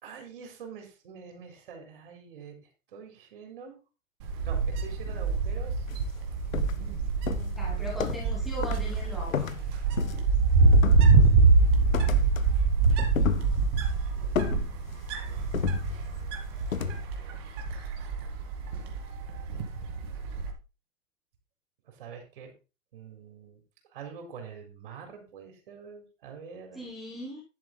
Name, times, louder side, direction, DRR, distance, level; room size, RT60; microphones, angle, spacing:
voice 1, 0.0-2.6 2.9-3.8 4.4-5.9 11.3-12.3 21.9-22.5 22.9-23.6 23.9-26.9, right 6 dB, 40° right, 3 dB, 4.0 m, -45 dB
Wind, 4.2-20.5, right 4 dB, 20° right, 1.3 m, -25 dB
sound 1, 5.9-6.1 6.5-6.9 7.3-8.4 8.6-8.9 9.3-10.4 10.7-11.4 11.9-12.5 12.8-13.9 14.3-15.1 15.5-16.2 16.7-17.0, left 7 dB, 85° left, 1.4 m, -32 dB
voice 2, 7.6-9.5 26.7-27.4, equal, ahead, -4 dB, 1.1 m, -38 dB
10.5 x 7.9 x 3.9 m, 0.31 s
hypercardioid pair, 170°, 39 cm